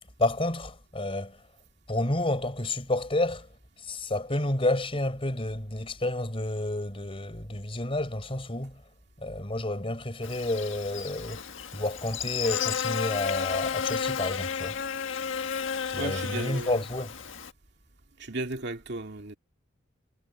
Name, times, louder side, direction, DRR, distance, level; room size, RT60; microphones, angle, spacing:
voice 1, 0.2-1.5 1.9-3.5 3.8-8.8 9.2-11.4 11.7-14.8 15.9-17.2, left 1 dB, 30° left, 4.3 m, -30 dB
Buzz, 10.2-17.5, left 6 dB, 75° left, 1.6 m, -32 dB
voice 2, 16.0-16.8 18.2-19.4, right 2 dB, 60° right, 2.4 m, -35 dB
head